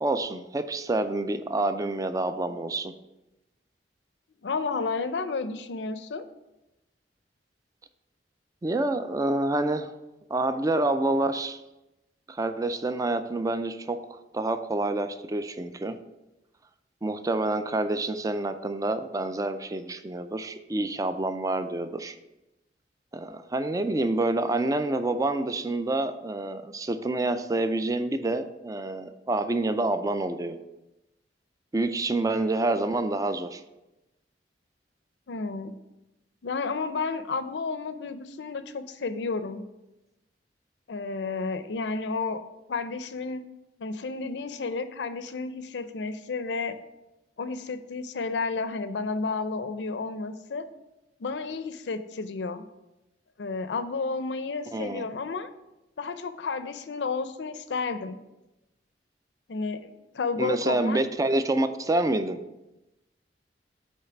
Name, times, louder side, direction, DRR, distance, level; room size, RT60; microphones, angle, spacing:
voice 1, 0.0-2.9 8.6-9.9 10.3-11.6 12.3-16.0 17.0-22.2 23.1-30.6 31.7-33.6 54.7-55.1 60.4-62.4, right 2 dB, 20° right, 10 dB, 0.4 m, -27 dB
voice 2, 4.4-6.3 35.3-35.7 36.4-39.6 40.9-42.4 42.7-43.4 43.8-46.8 47.4-50.7 51.2-52.6 53.4-55.5 56.0-58.2 59.5-61.0, left 4 dB, 80° left, 11 dB, 0.5 m, -31 dB
8.3 x 3.2 x 5.9 m, 0.96 s
head